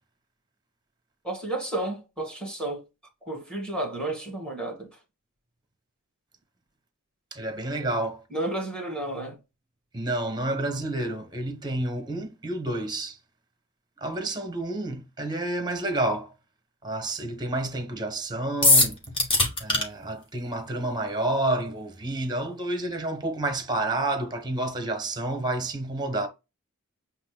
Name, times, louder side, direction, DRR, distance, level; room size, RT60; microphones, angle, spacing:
voice 1, 1.2-2.8 3.3-4.9 8.3-9.4, right 1 dB, 5° left, 2.1 m, -32 dB
voice 2, 7.3-8.2 9.9-13.2 14.0-16.3 16.8-19.0 19.6-26.3, right 2 dB, 20° right, 1.0 m, -29 dB
sound 1, 18.6-19.8, left 2 dB, 25° left, 1.8 m, -19 dB
8.1 x 2.9 x 2.2 m
head